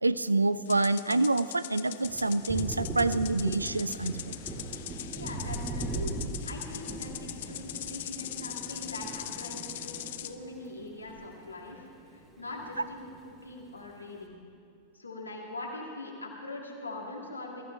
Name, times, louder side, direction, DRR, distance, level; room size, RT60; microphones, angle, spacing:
voice 1, 0.0-4.4, right 2 dB, 80° right, 16 dB, 0.3 m, -27 dB
sound 1, 0.7-10.4, left 13 dB, 55° left, 0.6 m, -41 dB
Thunder, 2.0-11.8 12.1-13.2, right 2 dB, 20° right, 2.2 m, -39 dB
voice 2, 5.2-14.3 14.9-17.6, left 2 dB, 80° left, -1 dB, 2.2 m, -42 dB
22.0 x 14.5 x 3.4 m, 2.4 s
figure-of-eight pair, 90°, 0 cm